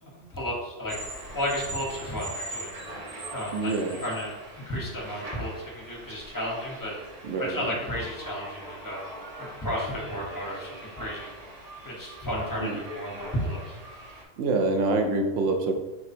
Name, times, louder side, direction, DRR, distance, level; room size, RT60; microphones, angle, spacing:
voice 1, 0.0-1.0 1.3-2.7 3.3-3.7 4.0-6.9 7.4-9.0 9.4-11.3 11.8-13.8, equal, 15° left, -4 dB, 1.0 m, -33 dB
sound 1, 0.9-14.2, right 1 dB, 40° right, 0.6 m, -41 dB
voice 2, 3.5-4.0 7.2-7.7 12.6-12.8 14.4-15.7, right 3 dB, 75° right, 4 dB, 0.9 m, -26 dB
4.7 x 2.3 x 4.2 m, 1.2 s
omnidirectional pair, 1.3 m